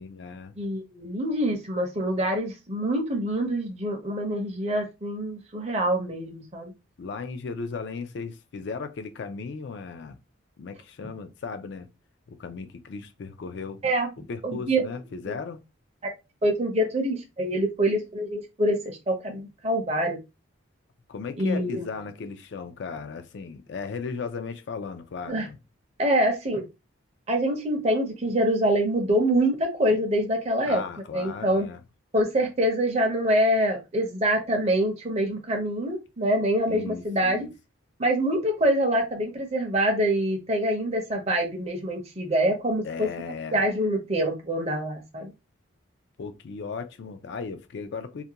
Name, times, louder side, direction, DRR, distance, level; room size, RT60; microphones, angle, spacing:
voice 1, 0.0-0.5 7.0-10.2 10.6-11.9 12.3-13.8 14.3-15.6 21.1-25.6 30.6-31.8 36.7-37.5 42.8-43.6 46.2-48.2, left 5 dB, 55° left, 0.3 m, -36 dB
voice 2, 0.6-6.7 13.8-14.1 14.4-14.8 15.3-15.4 16.0-16.1 16.4-20.2 21.4-22.0 25.3-25.5 26.0-26.6 27.3-30.8 31.1-31.7 32.1-37.5 38.0-45.3, right 1 dB, 30° right, 0.6 m, -25 dB
2.4 x 2.2 x 2.7 m
head